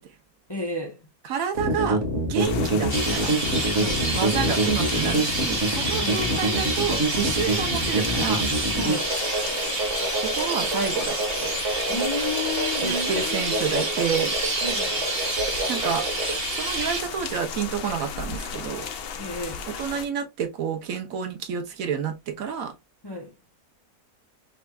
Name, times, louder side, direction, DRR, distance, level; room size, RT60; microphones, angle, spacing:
voice 1, 0.5-1.0 3.7-4.0 6.0-6.2 8.7-9.1 11.9-13.8 14.6-14.9 19.2-19.6 23.0-23.3, left 2 dB, 20° left, 0.7 m, -32 dB
voice 2, 1.3-2.0 2.3-3.4 4.1-8.4 10.2-11.5 12.8-14.3 15.7-16.1 16.5-18.9 19.8-22.7, right 7 dB, 65° right, 1.1 m, -29 dB
sound 1, 1.5-16.4, right 2 dB, 50° right, 1.6 m, -26 dB
sound 2, 2.4-20.1, left 6 dB, 60° left, 0.6 m, -35 dB
Chirp tweet, 2.9-17.0, right 3 dB, 25° right, 1.4 m, -29 dB
5.2 x 3.3 x 2.3 m
omnidirectional pair, 1.6 m